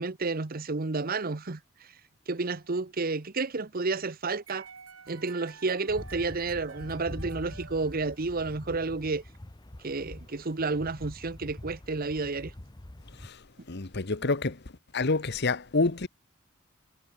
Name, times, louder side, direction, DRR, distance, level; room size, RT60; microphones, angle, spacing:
voice 1, 0.0-1.6 2.3-4.7 5.1-9.2 9.8-12.5, right 3 dB, 45° right, 0.9 m, -31 dB
sound 1, 4.5-8.6, right 6 dB, 85° right, 3.0 m, -50 dB
sound 2, 5.9-13.3, left 1 dB, 20° left, 0.8 m, -45 dB
voice 2, 13.7-14.6 14.9-16.1, left 3 dB, 55° left, 1.2 m, -27 dB
head